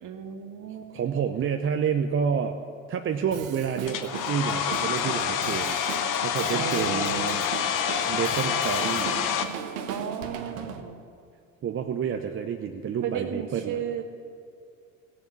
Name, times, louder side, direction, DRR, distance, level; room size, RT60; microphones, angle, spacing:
voice 1, 0.0-0.9 6.5-7.3 9.9-11.0 13.0-14.0, right 8 dB, 45° right, 6 dB, 1.7 m, -34 dB
voice 2, 0.9-2.5 2.9-5.8 6.2-7.4 8.1-9.1 11.6-13.8, right 7 dB, 30° right, 5 dB, 0.8 m, -29 dB
Drum kit, 3.3-10.8, right 8 dB, 65° right, 1.2 m, -38 dB
Domestic sounds home sounds, 3.9-9.5, left 8 dB, 45° left, 1.2 m, -27 dB
16.5 x 7.1 x 8.4 m, 2.4 s
hypercardioid pair, 70°, 43 cm